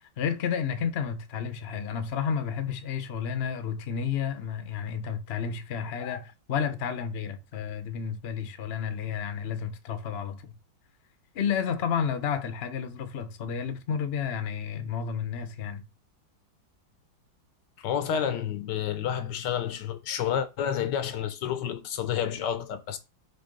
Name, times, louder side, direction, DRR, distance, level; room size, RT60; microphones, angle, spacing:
voice 1, 0.0-10.5 11.3-15.8, left 7 dB, 50° left, 0.7 m, -31 dB
voice 2, 17.8-23.0, left 9 dB, 70° left, 1.2 m, -30 dB
6.0 x 3.1 x 5.2 m
omnidirectional pair, 2.1 m